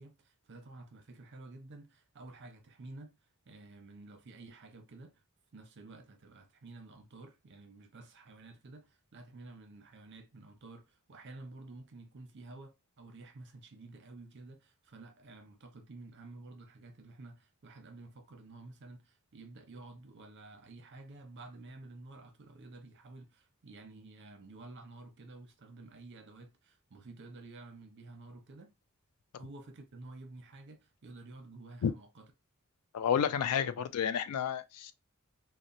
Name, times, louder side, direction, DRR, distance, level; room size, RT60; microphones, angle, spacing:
voice 1, 0.0-3.2 3.5-5.2 5.5-28.7 29.3-32.2, right 2 dB, 55° right, 0.6 m, -51 dB
voice 2, 32.9-34.9, left 8 dB, 85° left, 0.3 m, -30 dB
2.9 x 2.0 x 2.5 m
head